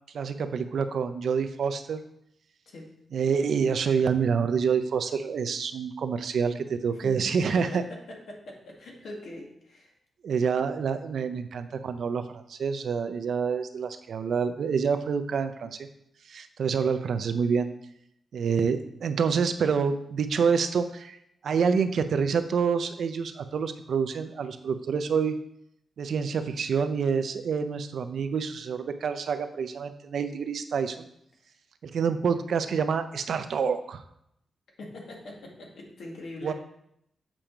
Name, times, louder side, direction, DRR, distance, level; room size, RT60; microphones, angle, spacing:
voice 1, 0.1-2.0 3.1-7.8 10.2-15.9 16.3-17.7 18.3-21.2 21.4-25.4 26.0-31.0 31.8-34.0 36.4-36.5, right 6 dB, 65° right, 9 dB, 0.6 m, -27 dB
voice 2, 7.0-9.9 34.8-36.5, left 2 dB, 75° left, -1 dB, 1.9 m, -42 dB
7.6 x 5.1 x 4.5 m, 0.75 s
wide cardioid pair, 145°, 0 cm